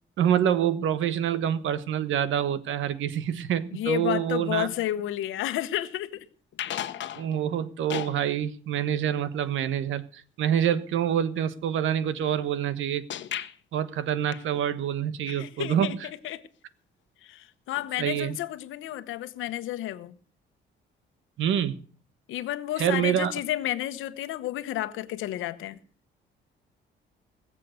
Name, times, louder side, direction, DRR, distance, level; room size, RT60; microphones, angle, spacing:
voice 1, 0.2-4.7 7.1-10.0 10.4-13.0 13.7-16.0 18.0-18.4 21.4-21.8 22.8-23.3, right 9 dB, 80° right, 1.3 m, -26 dB
voice 2, 3.7-6.3 15.3-16.4 17.2-20.1 22.3-25.8, left 14 dB, 90° left, 1.1 m, -31 dB
sound 1, 6.5-7.4 7.9-8.2 13.1-13.6 14.3-14.7 17.8-17.9 18.2-18.3 19.5-19.6, left 11 dB, 65° left, 1.1 m, -35 dB
19.5 x 7.6 x 6.4 m
cardioid pair, 90°, 20 cm